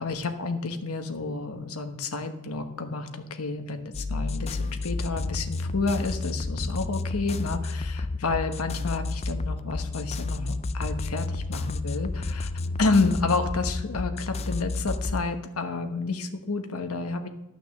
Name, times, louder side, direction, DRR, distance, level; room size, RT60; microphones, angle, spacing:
voice 1, 0.0-12.5 12.8-17.3, left 3 dB, 85° left, 6 dB, 1.1 m, -30 dB
sound 1, 3.9-15.2, left 3 dB, 30° left, 0.4 m, -31 dB
11.5 x 6.4 x 6.5 m, 0.88 s
head